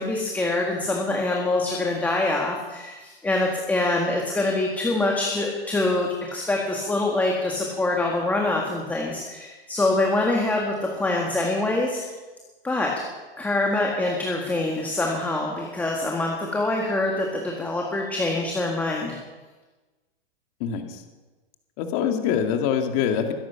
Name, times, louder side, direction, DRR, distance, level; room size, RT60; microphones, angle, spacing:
voice 1, 0.0-12.0 12.6-13.0 13.4-19.2, left 2 dB, 5° left, -1 dB, 1.7 m, -25 dB
voice 2, 20.6-21.0 21.8-23.3, left 8 dB, 40° left, 5 dB, 2.1 m, -24 dB
21.5 x 11.0 x 5.8 m, 1.2 s
supercardioid pair, 155°, 30 cm